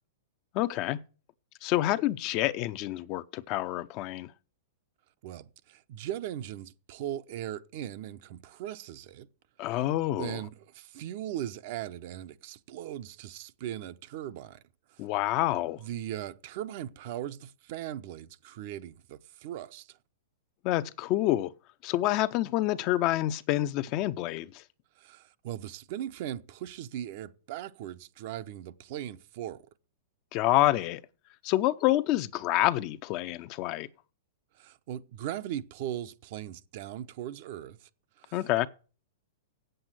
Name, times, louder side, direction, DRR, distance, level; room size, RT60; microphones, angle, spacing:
voice 1, 0.5-1.0 1.6-4.3 9.6-10.4 15.0-15.8 20.6-21.5 21.8-24.6 30.3-31.0 31.4-33.9 38.3-38.7, left 15 dB, 40° left, 0.6 m, -27 dB
voice 2, 5.2-9.3 10.2-14.6 15.8-20.0 25.0-29.6 34.6-37.8 38.2-38.4, right 11 dB, 55° right, 0.8 m, -39 dB
8.0 x 7.9 x 7.6 m
hypercardioid pair, 135°, 0 cm